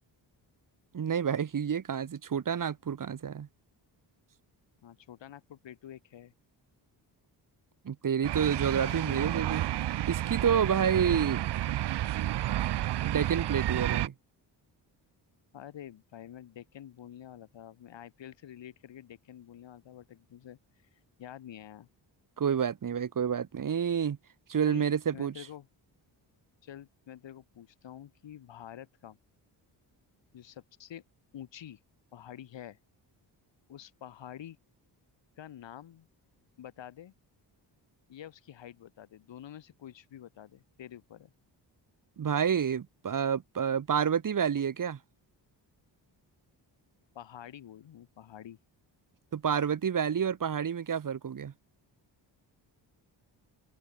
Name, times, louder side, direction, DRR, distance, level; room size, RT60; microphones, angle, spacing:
voice 1, 0.9-3.5 7.8-9.6 10.1-11.4 13.1-14.1 22.4-24.2 24.5-25.3 42.2-45.0 49.3-51.5, right 7 dB, 45° right, 1.3 m, -29 dB
voice 2, 4.8-6.3 8.8-9.6 10.9-11.4 15.5-20.6 20.9-21.9 24.6-24.9 25.1-25.7 26.6-29.2 30.3-31.0 31.3-31.8 32.1-32.8 33.7-34.6 35.4-36.1 36.6-37.1 38.1-41.3 47.2-48.6, left 10 dB, 80° left, 3.7 m, -48 dB
sound 1, 8.2-14.1, right 13 dB, 65° right, 0.7 m, -31 dB
cardioid pair, 80°, 44 cm